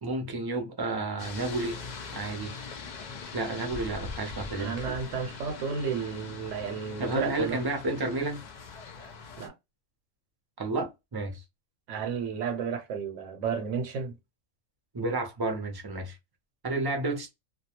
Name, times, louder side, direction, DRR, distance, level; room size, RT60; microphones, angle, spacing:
voice 1, 0.0-1.8 2.1-2.5 3.3-4.9 7.0-8.4 10.6-11.4 14.9-16.2 16.6-17.3, right 2 dB, 30° right, 0.5 m, -31 dB
sound 1, 1.2-9.5, left 4 dB, 55° left, 0.5 m, -42 dB
voice 2, 4.6-7.6 9.4-9.5 11.9-14.2, right 6 dB, 70° right, 0.9 m, -32 dB
2.3 x 2.2 x 2.8 m
omnidirectional pair, 1.3 m